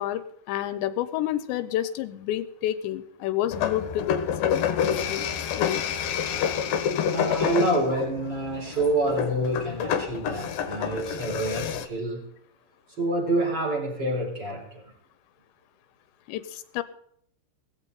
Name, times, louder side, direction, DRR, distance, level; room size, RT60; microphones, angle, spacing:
voice 1, 0.0-4.7 5.1-5.3 5.5-5.8 16.3-16.8, left 12 dB, 90° left, 13 dB, 3.2 m, -29 dB
sound 1, 3.5-11.9, left 8 dB, 65° left, 2.5 m, -28 dB
voice 2, 7.0-12.3 13.0-14.8, right 1 dB, 25° right, -3 dB, 4.9 m, -27 dB
17.5 x 14.5 x 4.1 m, 0.69 s
omnidirectional pair, 5.1 m